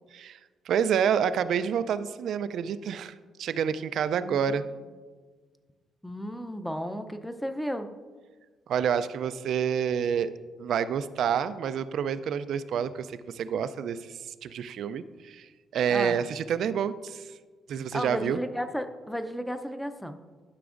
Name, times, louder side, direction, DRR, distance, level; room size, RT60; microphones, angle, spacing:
voice 1, 0.7-3.1 3.4-4.6 8.7-10.3 10.6-17.3 17.7-18.4, right 8 dB, 70° right, 13 dB, 0.4 m, -28 dB
voice 2, 4.1-4.6 6.0-7.9 15.9-16.2 17.9-20.2, equal, 5° left, 8 dB, 0.6 m, -34 dB
12.5 x 6.0 x 2.5 m, 1.4 s
cardioid pair, 90°, 0 cm